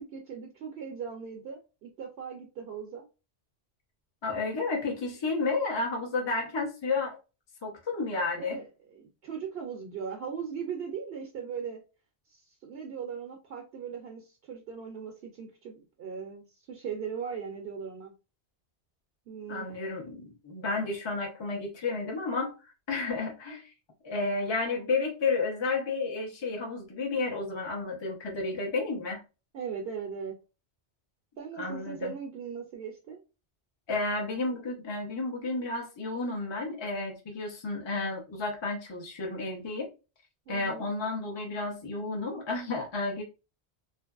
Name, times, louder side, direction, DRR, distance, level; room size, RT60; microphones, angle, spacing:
voice 1, 0.0-3.1 8.4-8.6 8.9-11.8 12.3-18.1 19.3-19.7 29.5-30.4 31.4-33.2 40.5-40.9, right 6 dB, 65° right, 0.8 m, -39 dB
voice 2, 4.2-7.2 7.6-8.6 19.5-23.6 24.0-29.2 31.6-32.1 33.9-39.9 40.5-43.2, left 3 dB, 30° left, 0.6 m, -32 dB
2.8 x 2.5 x 2.3 m
omnidirectional pair, 1.1 m